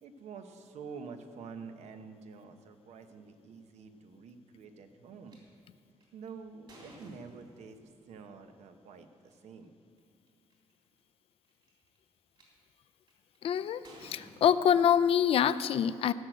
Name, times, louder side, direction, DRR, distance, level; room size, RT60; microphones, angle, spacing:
voice 1, 0.0-5.4 6.1-9.7, right 5 dB, 75° right, 8 dB, 1.0 m, -48 dB
sound 1, 5.3-5.4 6.0-7.9 9.1-9.3 10.0-10.1 10.3-10.7 11.4-12.4 13.1-13.4 13.8-15.3, right 1 dB, 45° right, 3.6 m, -55 dB
voice 2, 13.4-16.1, left 9 dB, 55° left, 13 dB, 0.4 m, -26 dB
16.0 x 6.4 x 7.7 m, 2.3 s
cardioid pair, 135°, 11 cm